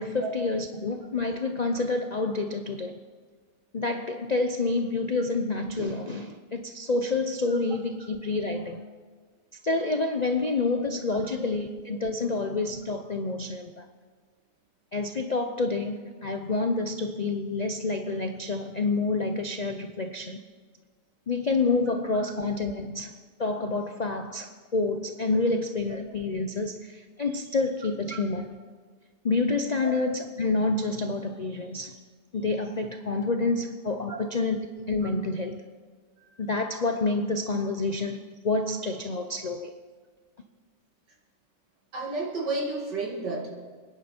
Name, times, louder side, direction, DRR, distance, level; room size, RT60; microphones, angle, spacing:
voice 1, 0.0-3.0 3.7-8.8 9.6-13.9 14.9-20.4 21.3-23.1 23.4-28.5 29.2-32.0 32.3-35.6 36.4-39.7, left 3 dB, 65° left, 0.4 m, -28 dB
voice 2, 41.9-43.5, right 3 dB, 85° right, 2.9 m, -32 dB
28.0 x 10.0 x 4.4 m
omnidirectional pair, 1.8 m